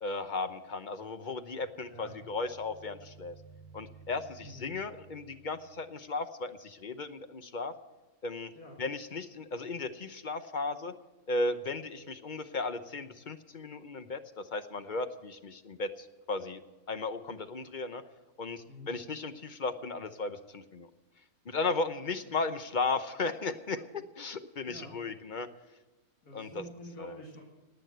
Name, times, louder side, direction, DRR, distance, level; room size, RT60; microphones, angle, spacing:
voice 1, 0.0-3.3 3.7-7.7 8.2-8.5 8.8-10.9 11.3-16.6 16.9-18.0 18.4-20.9 21.4-25.5 26.3-26.6 27.0-27.2, left 3 dB, 40° left, 10 dB, 0.8 m, -35 dB
sound 1, 1.4-6.1, right 5 dB, 15° right, 0.8 m, -56 dB
voice 2, 1.9-2.2 4.4-4.7 8.6-8.8 18.7-18.9 24.7-25.0 26.2-27.4, equal, 80° left, -1 dB, 3.0 m, -47 dB
18.5 x 9.0 x 7.8 m, 1.2 s
omnidirectional pair, 1.6 m